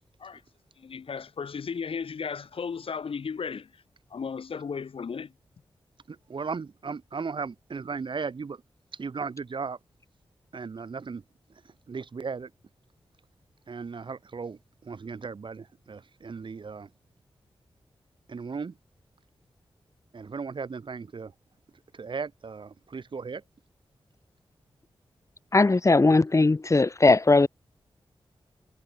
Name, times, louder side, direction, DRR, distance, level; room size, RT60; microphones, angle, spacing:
voice 1, 0.8-3.7 4.1-5.3, left 6 dB, 70° left, 7.9 m, -35 dB
voice 2, 6.1-8.6 8.9-9.8 10.5-11.2 11.9-12.5 13.7-16.9 18.3-18.7 20.1-21.3 21.9-23.4, right 5 dB, 60° right, 3.5 m, -36 dB
voice 3, 25.5-27.5, left 3 dB, 30° left, 2.7 m, -19 dB
wide cardioid pair, 80°, 10 cm